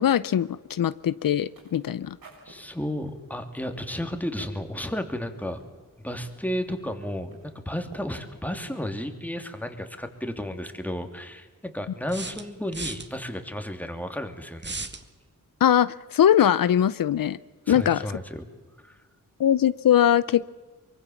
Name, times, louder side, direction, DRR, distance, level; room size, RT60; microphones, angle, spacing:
voice 1, 0.0-2.2 15.6-17.4 17.7-18.0 19.4-20.4, left 10 dB, 80° left, 16 dB, 0.7 m, -21 dB
sound 1, 1.4-9.0, right 2 dB, 90° right, 6.8 m, -53 dB
voice 2, 2.4-5.6 6.0-14.8 17.7-18.4 18.8-19.0, left 1 dB, 5° left, 6 dB, 2.9 m, -33 dB
sound 2, 10.0-10.1 12.1-13.1 14.6-15.0, right 3 dB, 35° right, 2.0 m, -35 dB
24.0 x 23.5 x 7.3 m, 1.3 s
wide cardioid pair, 80°, 33 cm